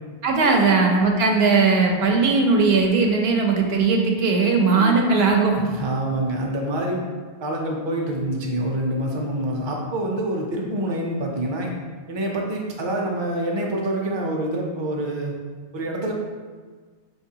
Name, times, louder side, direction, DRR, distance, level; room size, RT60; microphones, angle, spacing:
voice 1, 0.2-5.6, right 4 dB, 80° right, 1 dB, 0.9 m, -18 dB
voice 2, 5.7-7.0 7.4-11.7 12.1-15.3 15.7-16.1, right 1 dB, 35° right, -1 dB, 0.5 m, -26 dB
5.3 x 3.1 x 2.8 m, 1.5 s
omnidirectional pair, 1.0 m